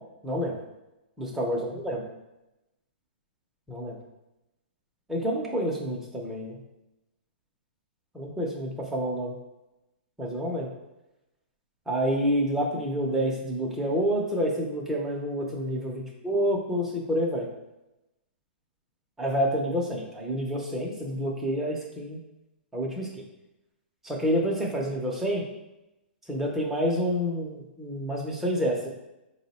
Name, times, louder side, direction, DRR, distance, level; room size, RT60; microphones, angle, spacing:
voice 1, 0.2-0.6 1.2-2.0 3.7-4.0 5.1-6.6 8.1-9.3 10.2-10.7 11.9-17.5 19.2-22.2 22.7-23.1 24.0-25.4 26.3-28.9, equal, 5° right, -2 dB, 0.5 m, -28 dB
4.5 x 2.0 x 4.1 m, 0.96 s
hypercardioid pair, 160°, 6 cm